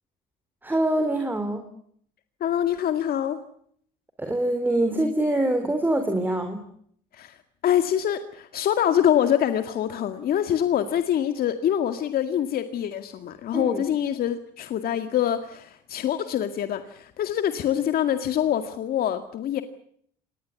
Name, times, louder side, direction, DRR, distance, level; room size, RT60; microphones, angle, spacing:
voice 1, 0.6-1.6 4.2-6.6 13.5-13.8, right 1 dB, 10° right, 6 dB, 3.7 m, -24 dB
voice 2, 2.4-3.4 7.1-7.4 7.6-19.6, left 10 dB, 60° left, 8 dB, 2.1 m, -25 dB
26.5 x 20.0 x 8.4 m, 0.65 s
cardioid pair, 110°, 17 cm